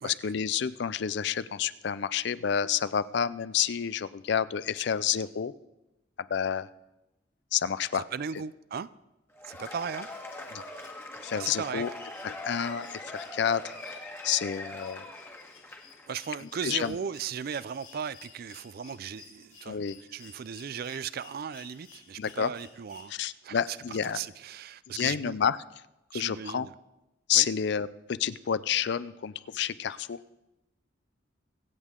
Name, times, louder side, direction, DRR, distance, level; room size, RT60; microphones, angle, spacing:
voice 1, 0.0-5.5 6.3-6.7 7.5-8.0 10.5-10.6 11.2-11.9 12.2-15.1 16.6-16.9 19.7-20.0 22.2-22.5 23.1-24.2 24.9-25.6 26.1-26.7 27.3-30.2, left 8 dB, 65° left, 0.4 m, -29 dB
voice 2, 7.9-8.9 9.4-10.1 11.3-11.9 16.1-19.8 20.1-23.1 23.4-25.4 26.1-26.7 27.3-27.5, right 7 dB, 55° right, 0.4 m, -37 dB
Cheering / Applause / Crowd, 9.3-16.1, left 2 dB, 15° left, 1.5 m, -42 dB
sound 1, 9.6-23.5 25.0-25.1, left 6 dB, 45° left, 3.0 m, -56 dB
24.0 x 8.2 x 3.7 m
head